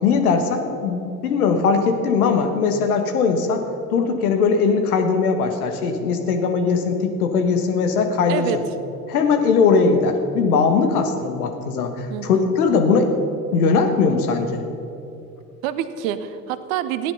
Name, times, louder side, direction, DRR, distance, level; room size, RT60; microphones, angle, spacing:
voice 1, 0.0-3.6 3.9-8.6 9.1-13.1 13.5-14.6, left 5 dB, 70° left, 5 dB, 1.5 m, -20 dB
voice 2, 8.3-8.6 12.1-12.5 15.6-17.1, right 11 dB, 60° right, 13 dB, 0.9 m, -27 dB
15.5 x 10.5 x 5.5 m, 2.7 s
figure-of-eight pair, 65°, 46 cm